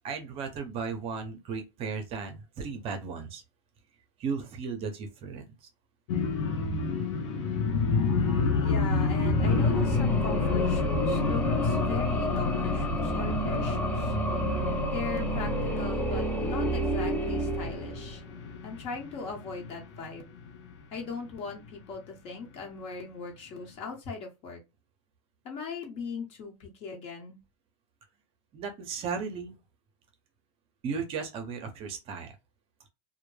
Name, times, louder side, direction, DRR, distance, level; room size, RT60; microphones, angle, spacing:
voice 1, 0.0-3.4 4.2-5.4 14.1-14.2 28.5-29.6 30.8-32.3, right 5 dB, 35° right, 0.6 m, -35 dB
sound 1, 6.1-19.9 20.4-20.7 21.1-21.4, left 4 dB, 70° left, 0.7 m, -29 dB
voice 2, 8.6-14.1 14.9-18.2 18.6-20.3 20.9-24.6 25.4-27.4, left 4 dB, 40° left, 1.1 m, -39 dB
sound 2, 9.2-18.3, right 1 dB, 10° left, 0.6 m, -30 dB
2.1 x 2.0 x 3.1 m
supercardioid pair, 125°, 16 cm